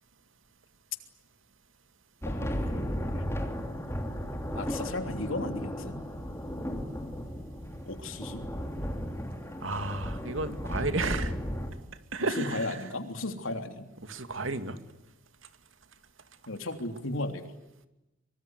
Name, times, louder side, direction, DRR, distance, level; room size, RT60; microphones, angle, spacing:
sound 1, 2.2-11.7, equal, 15° left, 3.3 m, -35 dB
voice 1, 2.3-3.2 4.5-6.0 7.8-8.4 12.4-13.9 16.5-17.5, left 2 dB, 80° left, 7 dB, 3.2 m, -35 dB
voice 2, 9.6-11.3 12.1-12.8 14.0-14.8, right 2 dB, 70° right, 9 dB, 2.5 m, -32 dB
25.0 x 24.0 x 9.7 m, 0.95 s
head